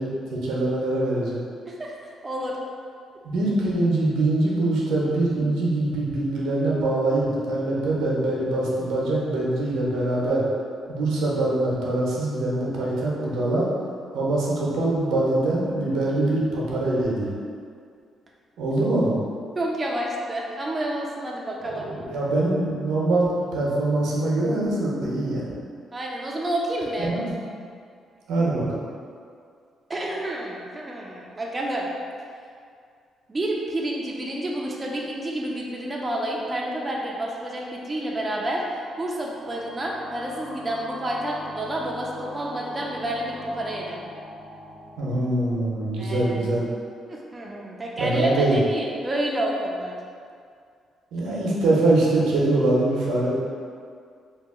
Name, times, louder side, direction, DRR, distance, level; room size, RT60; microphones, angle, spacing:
voice 1, 0.0-1.4 3.2-10.4 10.9-13.7 14.1-17.3 18.6-19.2 21.6-25.5 27.0-27.2 28.3-28.7 45.0-46.6 48.0-48.6 51.1-53.4, right 2 dB, 85° right, -5 dB, 0.7 m, -23 dB
voice 2, 2.2-2.6 19.6-21.9 25.9-27.1 29.9-31.9 33.3-44.0 46.0-46.5 47.1-49.9 51.3-51.4, right 1 dB, 25° right, -3 dB, 0.4 m, -29 dB
sound 1, 38.9-46.3, left 1 dB, 65° left, 0.8 m, -42 dB
2.8 x 2.3 x 3.5 m, 2.2 s
cardioid pair, 90°, 0 cm